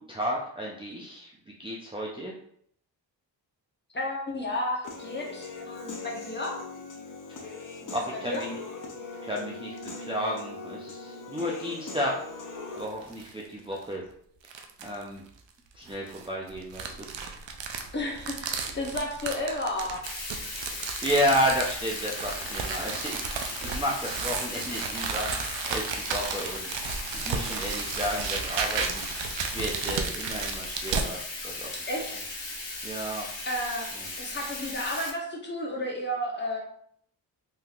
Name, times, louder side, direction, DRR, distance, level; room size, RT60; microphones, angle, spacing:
voice 1, 0.0-1.3 1.6-2.3 7.4-7.6 7.9-8.6 9.2-12.2 12.7-14.0 14.8-15.2 15.7-17.1 21.0-29.0 29.5-31.7 32.8-33.3, equal, 10° right, -4 dB, 0.5 m, -32 dB
voice 2, 3.9-6.6 7.8-8.4 17.9-20.0 31.9-32.3 33.4-33.9 34.2-36.6, left 1 dB, 25° left, -2 dB, 1.0 m, -32 dB
Human voice / Piano, 4.8-12.9, left 3 dB, 45° left, 0.7 m, -40 dB
sound 1, 12.8-13.3 13.8-13.9 14.4-15.0 15.9-31.1, right 5 dB, 75° right, 0.5 m, -34 dB
Bathtub (filling or washing), 20.0-35.1, left 2 dB, 85° left, 1.1 m, -37 dB
3.7 x 2.7 x 2.4 m, 0.66 s
cardioid pair, 65°, 44 cm